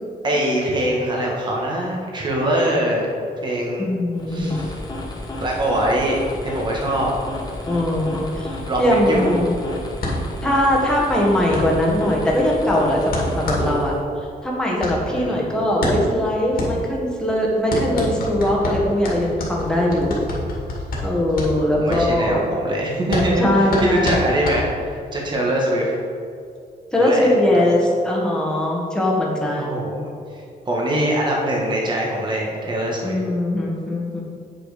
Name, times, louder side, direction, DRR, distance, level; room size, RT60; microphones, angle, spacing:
voice 1, 0.2-3.1 3.4-3.8 4.3-4.7 5.4-7.1 8.7-8.8 9.1-9.9 15.1-15.4 18.8-18.9 21.5-25.9 27.0-27.6 29.5-33.2, right 1 dB, 30° right, -2 dB, 1.7 m, -23 dB
voice 2, 3.8-4.6 7.7-8.5 8.8-9.5 10.4-13.9 14.4-20.2 21.0-22.5 23.4-24.3 26.9-29.9 33.0-34.2, left 1 dB, 5° left, -4 dB, 1.6 m, -20 dB
sound 1, 4.1-14.0, left 1 dB, 25° left, 1.2 m, -32 dB
sound 2, 10.0-25.1, left 1 dB, 65° left, 2.2 m, -28 dB
8.7 x 6.1 x 5.1 m, 2.3 s
wide cardioid pair, 160°, 16 cm